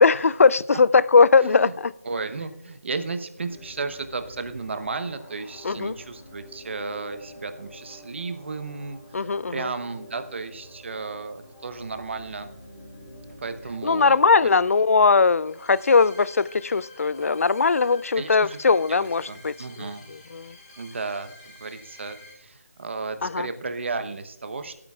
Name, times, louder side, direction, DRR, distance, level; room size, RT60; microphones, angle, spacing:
voice 1, 0.0-1.9 5.6-5.9 9.1-9.7 13.8-20.5 23.2-23.5, left 4 dB, 70° left, 20 dB, 0.3 m, -20 dB
voice 2, 1.4-1.7 2.0-12.5 13.4-14.5 18.1-18.6 18.9-20.0 20.8-24.8, right 4 dB, 50° right, 9 dB, 0.9 m, -34 dB
sound 1, 3.4-22.3, left 1 dB, 25° left, 3.3 m, -48 dB
25.0 x 8.8 x 2.4 m, 0.85 s
figure-of-eight pair, 165°, 8 cm